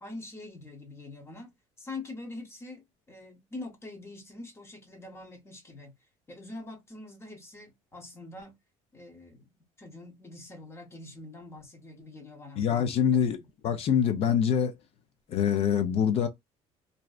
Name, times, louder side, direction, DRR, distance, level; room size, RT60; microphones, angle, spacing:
voice 1, 0.0-5.9 6.3-8.6 8.9-12.6 13.3-13.5, left 2 dB, 20° left, 0.9 m, -44 dB
voice 2, 12.6-13.4 13.6-14.7 15.3-16.3, left 8 dB, 50° left, 0.5 m, -25 dB
2.6 x 2.1 x 2.3 m
cardioid pair, 130°, 13 cm